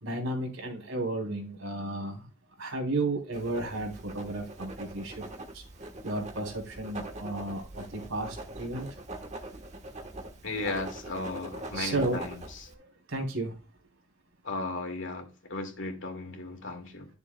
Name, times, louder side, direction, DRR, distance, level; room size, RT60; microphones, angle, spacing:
voice 1, 0.0-2.3 2.6-5.2 5.5-5.6 6.0-8.9 11.7-12.2 12.7-13.5, right 2 dB, 80° right, 3.1 m, -33 dB
Writing, 3.3-12.7, right 2 dB, 35° right, 1.2 m, -43 dB
voice 2, 10.4-12.4 14.4-17.1, left 2 dB, 65° left, 2.2 m, -35 dB
11.5 x 6.9 x 2.2 m
head